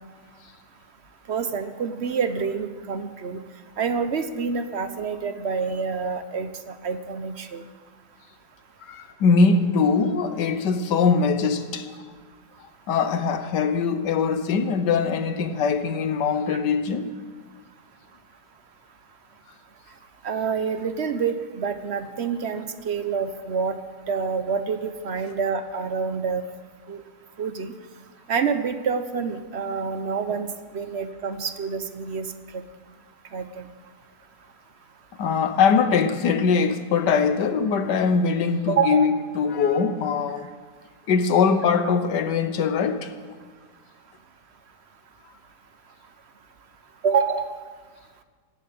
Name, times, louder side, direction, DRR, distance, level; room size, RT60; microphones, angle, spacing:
voice 1, 1.3-3.4 3.8-7.6 20.2-23.8 24.1-26.4 26.9-27.0 27.4-27.7 28.3-30.5 30.7-32.3 33.3-33.6 38.7-39.1 47.0-47.5, right 6 dB, 45° right, 1.0 m, -27 dB
voice 2, 8.9-11.9 12.9-17.1 35.2-40.5 41.1-43.1, left 5 dB, 85° left, 1.6 m, -22 dB
17.0 x 8.6 x 8.6 m
omnidirectional pair, 1.8 m